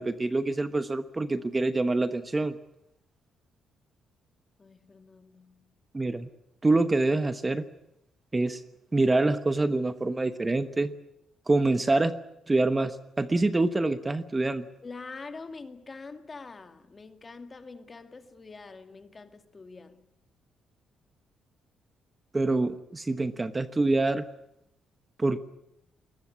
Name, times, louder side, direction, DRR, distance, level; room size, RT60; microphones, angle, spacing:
voice 1, 0.0-2.6 5.9-6.3 6.6-7.6 8.3-8.6 8.9-10.9 11.5-12.2 12.5-14.6 22.3-24.2 25.2-25.4, right 2 dB, 20° right, 1.1 m, -26 dB
voice 2, 4.6-5.7 14.8-20.0, left 4 dB, 30° left, 2.2 m, -45 dB
21.0 x 20.5 x 9.7 m
cardioid pair, 90°, 0 cm